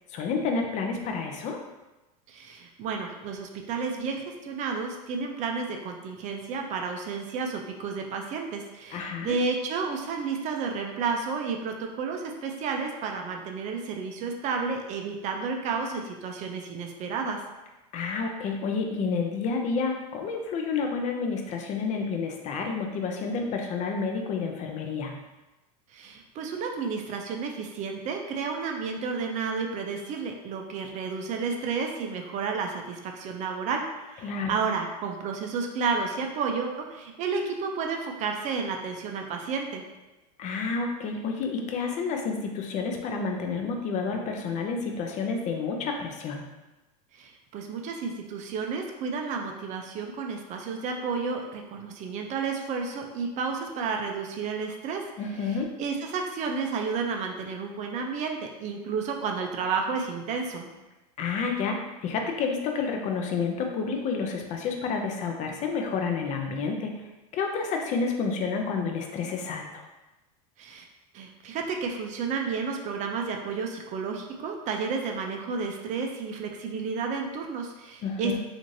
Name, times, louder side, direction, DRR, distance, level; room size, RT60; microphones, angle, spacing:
voice 1, 0.1-1.6 8.9-9.4 17.9-25.1 34.2-34.6 40.4-46.4 55.2-55.7 61.2-66.9 67.3-69.8 78.0-78.4, left 5 dB, 35° left, 3 dB, 0.5 m, -30 dB
voice 2, 2.3-17.4 25.9-39.8 47.1-55.0 55.4-60.7 70.6-70.9 71.1-78.4, right 5 dB, 35° right, 3 dB, 0.4 m, -31 dB
3.0 x 2.5 x 2.6 m, 1.1 s
supercardioid pair, 120°, 20 cm